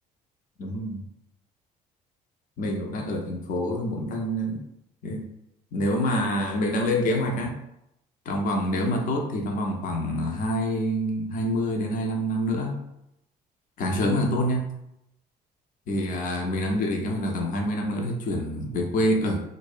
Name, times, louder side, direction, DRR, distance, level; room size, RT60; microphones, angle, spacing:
voice 1, 0.6-1.1 2.6-4.6 5.0-5.3 5.7-7.6 8.3-12.8 13.8-14.7 15.9-19.4, equal, 55° left, 1 dB, 0.5 m, -26 dB
2.5 x 2.0 x 2.4 m, 0.82 s
cardioid pair, 110°, 17 cm